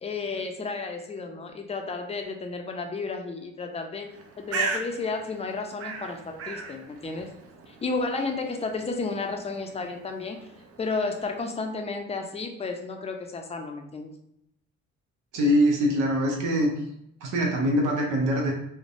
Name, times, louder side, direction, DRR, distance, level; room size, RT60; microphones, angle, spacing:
voice 1, 0.0-4.1 4.4-7.3 7.7-10.4 10.8-14.1, left 3 dB, 20° left, 3 dB, 0.4 m, -32 dB
Bird, 4.0-11.6, right 4 dB, 50° right, 0.5 m, -38 dB
voice 2, 15.3-16.7 17.2-18.5, equal, 90° right, 0 dB, 0.8 m, -23 dB
3.2 x 2.1 x 2.5 m, 0.79 s
cardioid pair, 90°, 30 cm